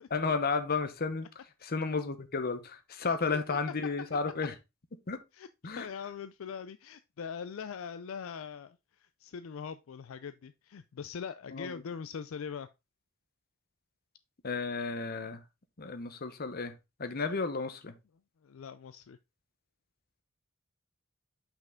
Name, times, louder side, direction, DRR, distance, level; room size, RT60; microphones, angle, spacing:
voice 1, 0.1-1.3 1.6-4.5 5.1-5.2 5.6-5.9 11.5-11.8 14.4-15.4 15.8-17.9, left 4 dB, 45° left, 0.9 m, -33 dB
voice 2, 5.3-12.7 18.4-19.2, left 6 dB, 70° left, 0.4 m, -42 dB
5.9 x 5.5 x 3.7 m
head